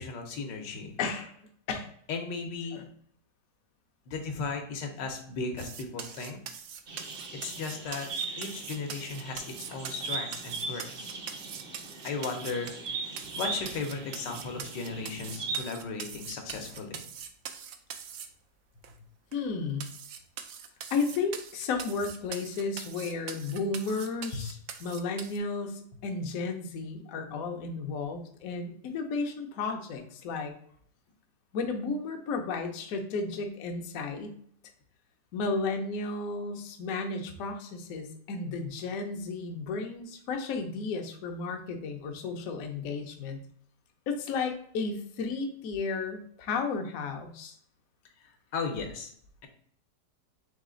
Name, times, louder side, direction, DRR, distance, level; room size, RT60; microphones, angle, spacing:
voice 1, 0.0-0.9 2.1-2.8 4.1-6.4 7.4-8.1 8.4-9.4 9.7-11.1 12.0-12.7 13.3-17.0 24.3-24.4 48.5-49.1, left 4 dB, 80° left, 3 dB, 1.5 m, -36 dB
voice 2, 1.0-1.4 1.7-1.9 2.7-2.9 19.3-19.9 20.9-30.5 31.5-34.4 35.3-43.4 44.1-47.6, left 4 dB, 65° left, 4 dB, 0.9 m, -33 dB
sound 1, 5.6-12.9 13.2-18.3 18.8-18.9 19.3-19.4 19.8-25.4, right 8 dB, 85° right, 0.6 m, -42 dB
sound 2, 6.9-15.6, right 4 dB, 50° right, 0.7 m, -39 dB
4.1 x 3.1 x 3.7 m, 0.62 s
omnidirectional pair, 1.9 m